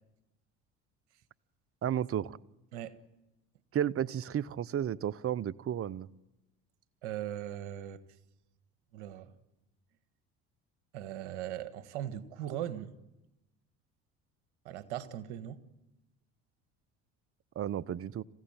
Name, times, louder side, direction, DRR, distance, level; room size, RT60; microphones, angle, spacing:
voice 1, 1.8-2.4 3.7-6.1 17.6-18.2, right 10 dB, 40° right, 0.8 m, -33 dB
voice 2, 7.0-8.0 8.9-9.3 10.9-12.9 14.6-15.6, right 11 dB, 80° right, 1.6 m, -39 dB
27.0 x 16.0 x 9.0 m
hypercardioid pair, 70°, 35 cm